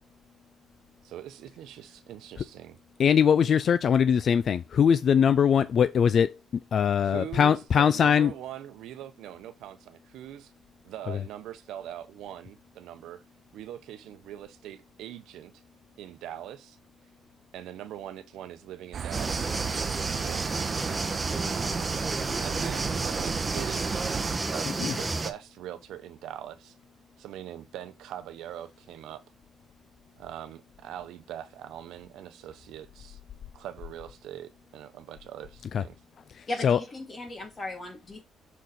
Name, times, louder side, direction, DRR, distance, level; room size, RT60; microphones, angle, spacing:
voice 1, 1.0-2.8 7.0-10.5 10.8-13.2 13.5-15.5 16.0-16.8 17.5-20.7 21.4-21.8 22.4-24.0 24.5-26.8 27.2-29.2 30.2-33.2 33.5-36.0, right 11 dB, 85° right, 0.7 m, -42 dB
voice 2, 3.0-6.4 6.7-8.3 11.1-11.2 24.8-24.9 35.7-35.8 36.4-36.8, left 7 dB, 55° left, 0.3 m, -22 dB
sound 1, 18.9-24.4, right 8 dB, 55° right, 0.4 m, -35 dB
sound 2, 19.1-25.3, right 3 dB, 25° right, 1.0 m, -31 dB
voice 3, 36.5-38.2, left 2 dB, 35° left, 2.4 m, -36 dB
6.3 x 4.2 x 3.9 m
cardioid pair, 90°, 0 cm